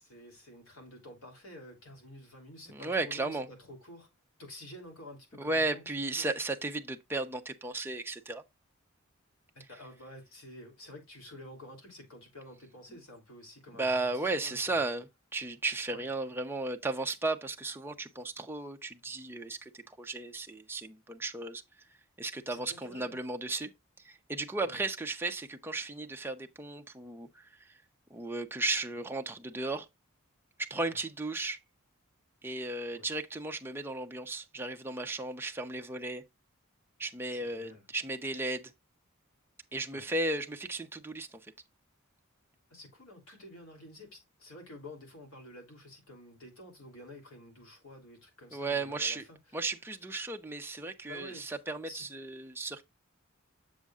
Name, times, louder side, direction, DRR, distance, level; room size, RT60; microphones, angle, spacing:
voice 1, 0.0-4.1 4.4-6.3 9.7-15.0 15.9-16.1 22.5-23.1 24.6-24.8 30.9-31.0 32.9-33.1 37.3-37.9 39.9-40.1 42.7-49.4 51.1-51.5 51.9-52.1, left 1 dB, 70° left, 3.2 m, -50 dB
voice 2, 2.7-3.5 5.4-8.4 13.8-21.6 22.2-23.7 24.0-27.7 28.1-29.9 30.6-31.6 32.4-36.2 37.0-38.7 39.7-41.4 48.5-49.2 49.5-52.9, right 2 dB, 10° right, 0.7 m, -35 dB
7.3 x 6.9 x 2.4 m
head